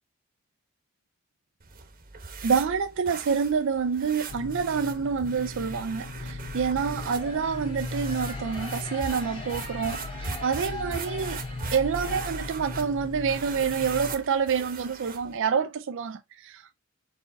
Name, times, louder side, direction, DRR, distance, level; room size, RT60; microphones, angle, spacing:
sound 1, 1.6-15.4, right 5 dB, 40° right, 1.0 m, -41 dB
voice 1, 2.4-11.4 11.7-16.8, right 6 dB, 60° right, 0.4 m, -27 dB
sound 2, 4.3-14.1, left 2 dB, 55° left, 0.6 m, -38 dB
sound 3, 7.0-12.9, left 1 dB, 25° left, 2.0 m, -41 dB
4.7 x 4.3 x 2.6 m
head